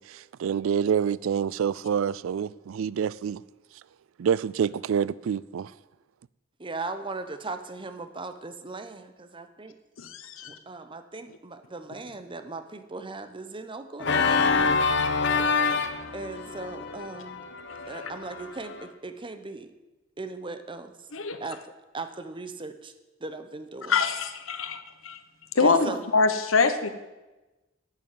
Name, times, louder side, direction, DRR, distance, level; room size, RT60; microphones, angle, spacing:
voice 1, 0.0-3.4 4.2-5.7, right 7 dB, 80° right, 0.4 m, -27 dB
voice 2, 6.6-9.8 10.4-14.4 16.1-17.4 17.9-19.7 20.2-21.0 21.4-21.6 21.9-22.9 23.2-24.0 25.6-26.1, right 3 dB, 25° right, 0.9 m, -38 dB
voice 3, 10.0-10.6 17.7-17.8 21.1-21.4 23.9-25.2 25.5-26.9, left 4 dB, 85° left, 1.1 m, -25 dB
Organ, 14.0-18.8, left 4 dB, 60° left, 1.0 m, -26 dB
11.0 x 6.9 x 9.2 m
head